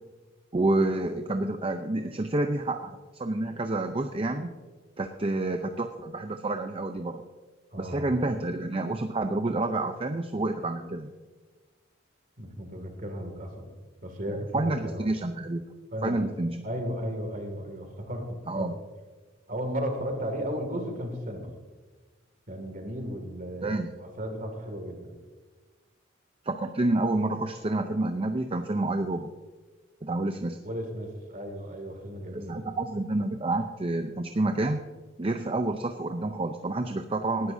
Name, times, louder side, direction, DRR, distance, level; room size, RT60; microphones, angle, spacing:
voice 1, 0.5-4.5 5.0-7.2 7.8-11.1 14.3-15.6 16.0-16.6 18.5-18.7 23.6-23.9 26.4-29.3 30.0-30.6 32.3-34.8 35.2-37.5, right 2 dB, 30° right, 6 dB, 0.6 m, -29 dB
voice 2, 7.7-8.1 12.4-13.7 14.0-15.1 15.9-16.3 16.6-18.7 19.5-21.5 22.5-25.1 30.6-32.6, equal, 45° right, 5 dB, 2.3 m, -35 dB
19.0 x 11.0 x 2.7 m, 1.4 s
head